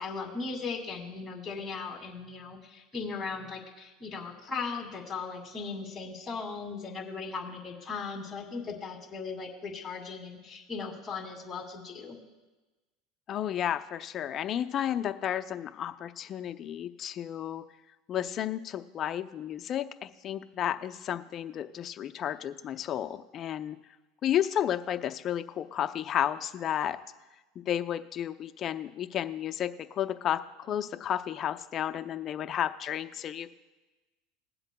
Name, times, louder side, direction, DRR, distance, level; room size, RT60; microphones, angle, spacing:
voice 1, 0.0-12.2, left 4 dB, 20° left, 0 dB, 2.4 m, -38 dB
voice 2, 13.3-17.6 18.1-23.8 24.2-27.0 27.7-33.5, left 10 dB, 40° left, 9 dB, 0.6 m, -32 dB
21.0 x 7.8 x 2.3 m, 1.1 s
supercardioid pair, 110°, 0 cm